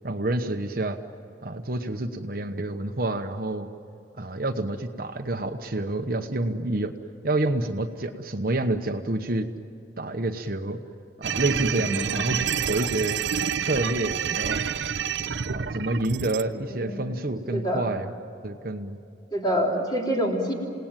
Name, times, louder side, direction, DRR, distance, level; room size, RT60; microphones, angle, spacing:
voice 1, 0.0-1.0 1.4-3.7 4.2-6.9 7.2-9.5 10.0-10.8 11.2-12.4 12.7-13.2 13.7-14.6 15.5-18.1 18.4-19.0, right 2 dB, 50° right, 6 dB, 1.1 m, -28 dB
sound 1, 11.2-16.4, right 7 dB, 70° right, 0.7 m, -28 dB
voice 2, 11.7-12.1 16.7-17.0 17.5-17.9 19.3-20.5, equal, 20° left, 0 dB, 3.5 m, -26 dB
28.0 x 18.5 x 9.1 m, 2.7 s
head